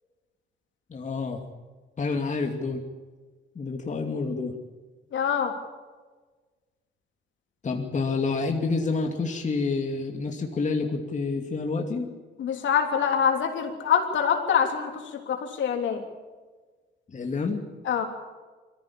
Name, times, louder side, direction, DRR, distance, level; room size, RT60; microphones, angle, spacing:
voice 1, 0.9-1.4 2.0-2.8 3.5-4.5 7.6-12.1 17.1-17.7, left 4 dB, 40° left, 2 dB, 2.5 m, -28 dB
voice 2, 5.1-5.5 12.4-16.0 17.9-18.0, left 7 dB, 70° left, 4 dB, 3.4 m, -25 dB
22.0 x 15.0 x 8.8 m, 1.4 s
cardioid pair, 90°, 20 cm